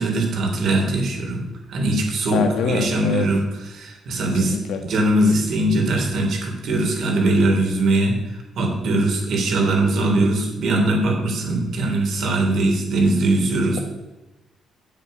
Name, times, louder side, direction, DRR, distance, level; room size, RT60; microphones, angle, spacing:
voice 1, 0.0-1.4 1.7-3.4 3.7-4.6 4.8-13.8, right 2 dB, 65° right, 1 dB, 3.5 m, -21 dB
voice 2, 2.3-3.3 4.4-4.8, left 5 dB, 85° left, 6 dB, 1.7 m, -25 dB
9.1 x 7.8 x 6.7 m, 1.0 s
cardioid pair, 90°, 0 cm